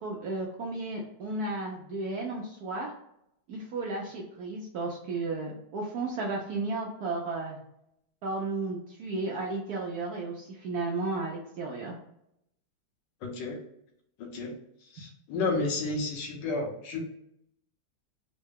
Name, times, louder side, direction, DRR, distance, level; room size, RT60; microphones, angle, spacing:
voice 1, 0.0-2.9 3.5-7.6 8.2-12.0, right 3 dB, 80° right, -1 dB, 0.8 m, -33 dB
voice 2, 13.2-13.6 14.3-14.5 14.9-17.0, left 3 dB, 65° left, 0 dB, 1.4 m, -31 dB
3.8 x 2.1 x 3.5 m, 0.76 s
omnidirectional pair, 2.3 m